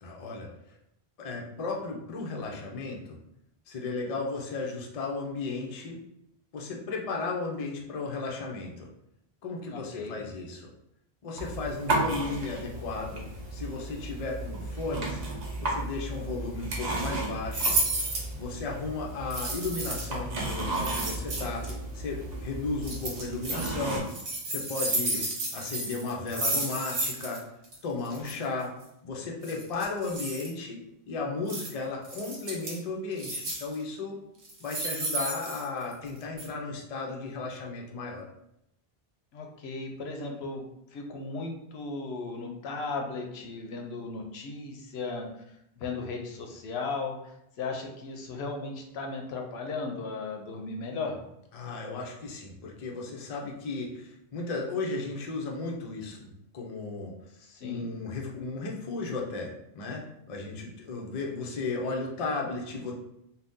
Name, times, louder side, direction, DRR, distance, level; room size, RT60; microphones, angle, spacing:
voice 1, 0.0-0.8 1.2-3.0 3.7-6.0 6.5-8.9 9.4-10.7 11.2-17.8 18.4-21.7 21.9-24.0 24.4-25.2 25.5-27.4 27.8-28.7 29.0-34.2 34.6-38.3 51.5-57.1 57.6-62.9, left 3 dB, 45° left, -1 dB, 0.5 m, -35 dB
voice 2, 9.7-10.2 39.3-40.7 40.9-51.2 57.4-57.9, left 3 dB, 80° left, 2 dB, 0.8 m, -36 dB
sound 1, 11.4-24.0, right 2 dB, 45° right, 0.7 m, -34 dB
sound 2, 17.5-18.3 19.3-20.1 20.7-21.7 22.8-23.7 24.1-27.4 27.6-27.7 28.0-28.3 29.4-30.5 31.5-31.7 32.0-32.8 33.2-33.7 34.4-36.1 36.4-36.5, right 2 dB, 80° right, 1.1 m, -32 dB
2.6 x 2.2 x 3.4 m, 0.80 s
omnidirectional pair, 1.1 m